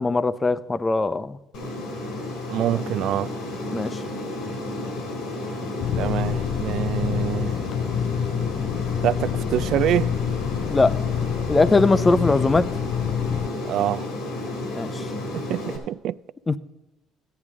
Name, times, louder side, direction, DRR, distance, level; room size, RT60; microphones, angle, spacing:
voice 1, 0.0-1.4 3.7-4.0 10.7-10.9 11.5-12.7 14.8-15.0 16.5-16.6, left 3 dB, 25° left, 0.6 m, -20 dB
Aircraft, 1.5-15.8, left 2 dB, 80° left, 3.4 m, -32 dB
voice 2, 2.5-3.3 6.0-7.6 9.0-10.1 13.6-14.1 15.3-16.1, right 12 dB, 70° right, 0.3 m, -25 dB
sound 1, 5.8-13.5, left 9 dB, 65° left, 0.3 m, -27 dB
14.0 x 10.0 x 3.7 m
supercardioid pair, 85°, 0 cm